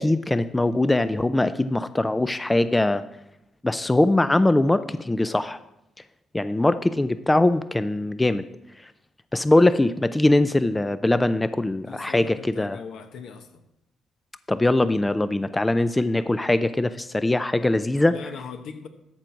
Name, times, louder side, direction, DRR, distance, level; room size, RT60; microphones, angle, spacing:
voice 1, 0.0-3.0 3.6-5.6 6.3-8.4 8.8-8.9 9.3-12.8 14.5-18.1, left 2 dB, 15° left, 13 dB, 0.4 m, -21 dB
voice 2, 11.9-13.6 18.1-18.9, left 6 dB, 75° left, 7 dB, 1.0 m, -39 dB
13.0 x 4.4 x 6.1 m, 0.86 s
cardioid pair, 90°, 0 cm